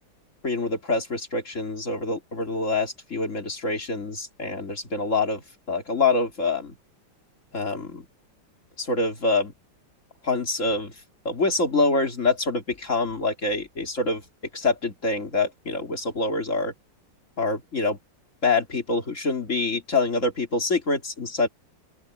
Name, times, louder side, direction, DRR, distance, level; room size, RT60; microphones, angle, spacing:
voice 1, 0.4-5.4 5.7-6.7 7.5-8.1 8.8-9.5 10.2-10.9 11.3-14.2 14.5-16.7 17.4-18.0 18.4-21.5, left 3 dB, 40° left, 3.5 m, -25 dB
open air
omnidirectional pair, 2.1 m